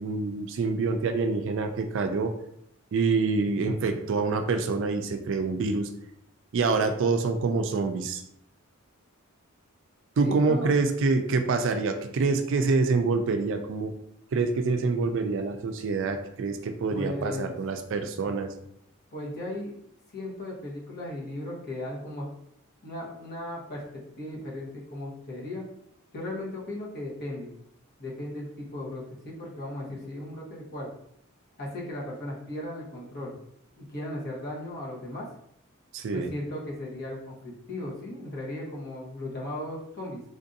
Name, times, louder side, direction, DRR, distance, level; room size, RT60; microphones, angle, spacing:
voice 1, 0.0-2.3 2.9-5.9 6.5-8.2 10.2-13.9 14.3-18.5 35.9-36.3, right 4 dB, 60° right, 6 dB, 0.4 m, -26 dB
voice 2, 10.2-10.7 16.9-17.5 19.1-19.8 20.1-22.3 22.8-25.6 26.1-27.5 28.0-30.9 31.6-33.4 33.8-35.3 36.1-40.2, left 1 dB, 45° left, -4 dB, 1.1 m, -36 dB
3.7 x 2.5 x 2.6 m, 0.74 s
head